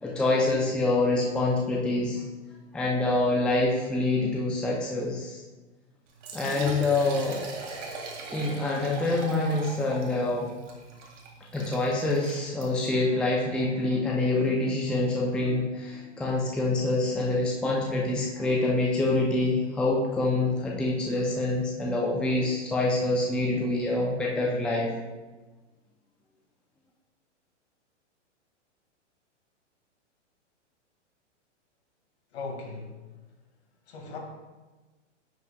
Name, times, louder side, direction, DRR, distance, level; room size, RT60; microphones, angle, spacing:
voice 1, 0.0-2.2 2.7-5.4 6.3-7.4 8.3-10.5 11.5-24.9, left 2 dB, 5° left, -3 dB, 0.5 m, -26 dB
Liquid, 6.1-13.0, right 4 dB, 75° right, 2.0 m, -40 dB
voice 2, 32.3-33.0 33.9-34.2, left 3 dB, 60° left, 1 dB, 2.1 m, -38 dB
10.5 x 5.5 x 2.3 m, 1.2 s
hypercardioid pair, 130°, 36 cm